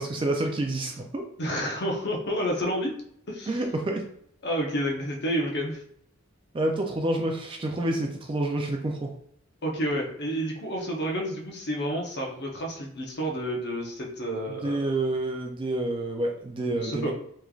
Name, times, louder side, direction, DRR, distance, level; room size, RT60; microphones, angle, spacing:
voice 1, 0.0-1.3 3.5-4.0 6.5-9.1 14.5-17.1, right 2 dB, 25° right, 2 dB, 0.3 m, -28 dB
voice 2, 1.4-2.9 3.3-3.5 4.4-5.8 9.6-14.8 16.7-17.1, equal, 50° left, -1 dB, 0.8 m, -30 dB
3.6 x 3.1 x 2.4 m, 0.66 s
head